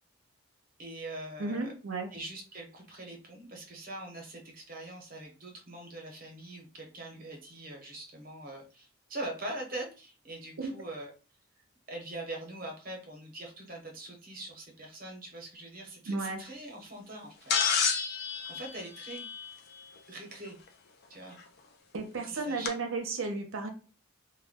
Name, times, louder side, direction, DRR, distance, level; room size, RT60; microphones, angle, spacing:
voice 1, 0.8-1.7 2.1-11.1 11.9-19.3 20.1-20.6 21.1-21.4 22.3-22.7, right 1 dB, 40° right, 1 dB, 0.8 m, -43 dB
voice 2, 1.4-2.1 10.6-10.7 16.1-16.4 21.9-23.7, right 3 dB, 75° right, 4 dB, 0.6 m, -33 dB
sound 1, 17.5-19.8 21.4-21.5 22.6-22.7, left 6 dB, 50° left, 0.4 m, -30 dB
2.2 x 2.1 x 3.5 m, 0.35 s
head